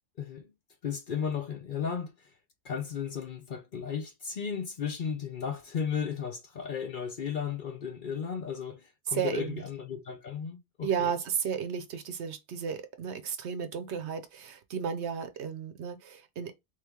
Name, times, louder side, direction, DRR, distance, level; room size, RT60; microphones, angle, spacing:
voice 1, 0.2-0.5 0.8-2.3 2.6-11.1, left 7 dB, 50° left, 0.7 m, -35 dB
voice 2, 9.1-9.6 10.8-16.5, right 7 dB, 70° right, 0.9 m, -33 dB
3.4 x 3.2 x 3.4 m
omnidirectional pair, 1.3 m